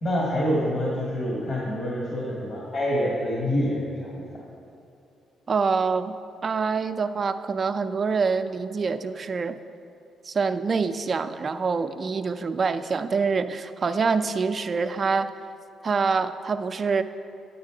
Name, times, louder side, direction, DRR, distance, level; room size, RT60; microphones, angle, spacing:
voice 1, 0.0-4.3, equal, 45° left, -5 dB, 1.9 m, -26 dB
voice 2, 5.5-6.1 6.4-9.6 10.2-15.3 15.8-17.0, right 5 dB, 40° right, 9 dB, 0.4 m, -25 dB
9.5 x 8.2 x 3.8 m, 2.6 s
cardioid pair, 90°, 0 cm